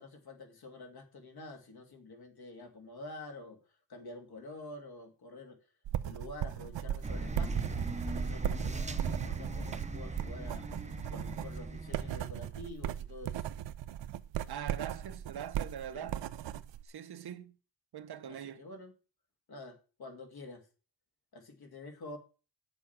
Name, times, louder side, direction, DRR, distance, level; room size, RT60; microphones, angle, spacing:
voice 1, 0.0-3.6 3.9-5.6 6.0-7.8 8.1-10.7 11.1-13.5 15.9-16.1 18.3-18.9 19.5-20.7 21.3-22.2, left 2 dB, 60° left, 2.5 m, -48 dB
sound 1, 5.8-16.8, right 11 dB, 80° right, 0.7 m, -37 dB
sound 2, 7.0-12.3, right 3 dB, 15° right, 0.8 m, -38 dB
voice 2, 14.5-16.3 16.8-17.5 17.9-18.7, right 9 dB, 60° right, 1.0 m, -42 dB
8.8 x 7.0 x 5.8 m
wide cardioid pair, 140°, 43 cm